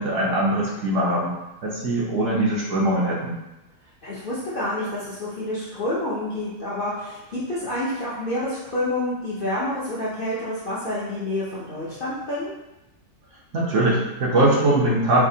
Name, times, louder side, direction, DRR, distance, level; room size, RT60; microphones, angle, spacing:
voice 1, 0.0-1.3 1.6-3.3 13.5-15.2, right 1 dB, 60° right, -4 dB, 0.9 m, -21 dB
voice 2, 4.0-12.5, left 1 dB, 50° left, -9 dB, 0.6 m, -28 dB
4.8 x 2.0 x 2.7 m, 0.98 s
omnidirectional pair, 1.6 m